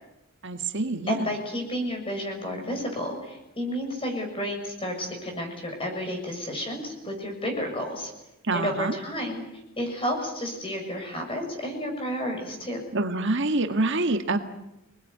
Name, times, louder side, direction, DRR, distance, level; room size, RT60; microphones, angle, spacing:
voice 1, 0.4-1.3 8.4-9.0 12.9-14.4, right 2 dB, 55° right, 6 dB, 1.7 m, -26 dB
voice 2, 1.1-8.1 8.5-9.4 9.8-12.8, equal, 25° left, 3 dB, 6.7 m, -31 dB
27.5 x 20.0 x 9.5 m, 0.93 s
head